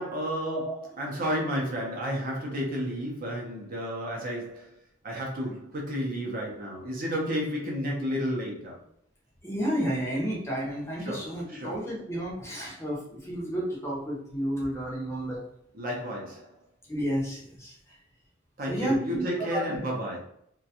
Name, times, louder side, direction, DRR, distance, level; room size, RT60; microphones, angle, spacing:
voice 1, 0.0-4.7 5.0-8.8 11.0-11.9 15.7-16.5 18.6-20.2, equal, 45° right, -2 dB, 0.6 m, -32 dB
voice 2, 9.4-15.4 16.9-17.7 18.7-19.8, equal, 15° left, -4 dB, 0.6 m, -31 dB
2.4 x 2.2 x 2.7 m, 0.71 s
head